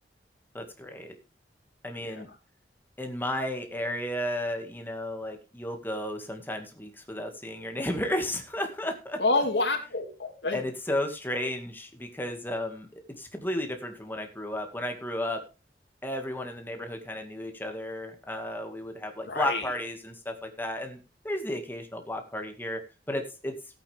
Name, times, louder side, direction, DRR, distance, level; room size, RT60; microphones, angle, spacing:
voice 1, 0.5-1.1 1.8-2.3 3.0-9.2 10.5-15.4 16.0-22.8 23.1-23.5, left 1 dB, 10° left, 4 dB, 2.0 m, -33 dB
voice 2, 9.2-10.6 19.3-19.7, left 2 dB, 75° left, 4 dB, 2.8 m, -28 dB
16.0 x 8.6 x 3.5 m, 0.31 s
head